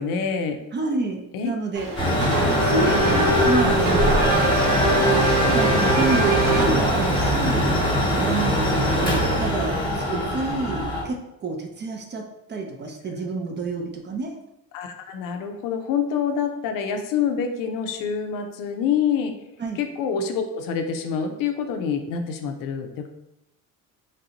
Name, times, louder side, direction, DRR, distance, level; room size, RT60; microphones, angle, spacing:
voice 1, 0.0-0.6 1.3-1.5 1.9-2.1 2.6-3.3 10.1-10.2 14.7-19.3 19.8-23.1, left 6 dB, 70° left, 5 dB, 0.5 m, -27 dB
voice 2, 0.7-1.9 2.6-4.7 5.1-5.3 5.5-7.7 8.2-14.4 19.6-19.8, right 3 dB, 30° right, 3 dB, 0.6 m, -29 dB
Race car auto racing / Accelerating revving vroom, 1.7-7.2, right 1 dB, 70° right, 1.1 m, -23 dB
Mechanical fan, 2.0-11.0, equal, 15° left, 1.0 m, -22 dB
3.2 x 2.6 x 2.8 m, 0.86 s
cardioid pair, 95°, 34 cm